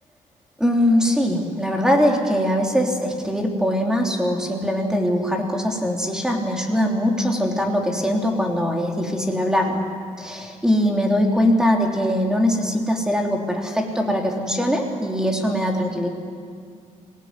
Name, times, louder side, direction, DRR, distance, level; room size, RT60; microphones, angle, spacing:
voice 1, 0.6-9.8 10.2-16.1, equal, 5° right, 1 dB, 3.3 m, -21 dB
25.0 x 18.5 x 9.6 m, 2.3 s
cardioid pair, 140°, 14 cm